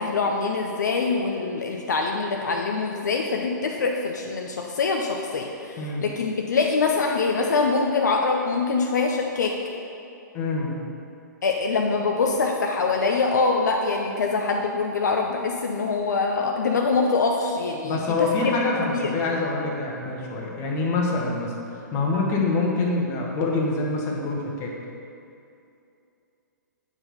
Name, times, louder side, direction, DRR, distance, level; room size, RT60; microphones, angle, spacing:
voice 1, 0.0-9.5 11.4-18.5 18.9-19.1, left 4 dB, 65° left, 1 dB, 0.7 m, -24 dB
voice 2, 5.8-6.1 10.3-10.8 17.8-24.7, left 3 dB, 25° left, -1 dB, 1.3 m, -25 dB
8.7 x 4.6 x 5.2 m, 2.6 s
figure-of-eight pair, 120°, 10 cm